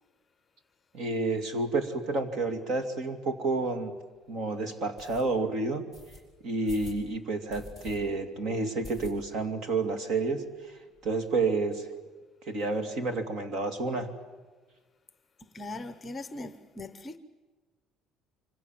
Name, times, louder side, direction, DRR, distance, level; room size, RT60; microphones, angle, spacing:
voice 1, 0.9-4.0 4.3-5.9 6.4-10.5 11.0-11.9 12.5-14.1, right 3 dB, 50° right, 2.8 m, -30 dB
sound 1, 3.6-3.7 4.1-4.2 5.0-5.2 5.9-6.2 6.6-7.0 7.5-8.0 8.3-8.4 8.8-9.5 9.8-9.9 10.2-10.3 10.5-11.1, left 2 dB, 25° right, 6.4 m, -46 dB
voice 2, 15.4-17.2, left 2 dB, 20° left, 0.9 m, -40 dB
26.5 x 25.0 x 7.6 m
cardioid pair, 170°, 0 cm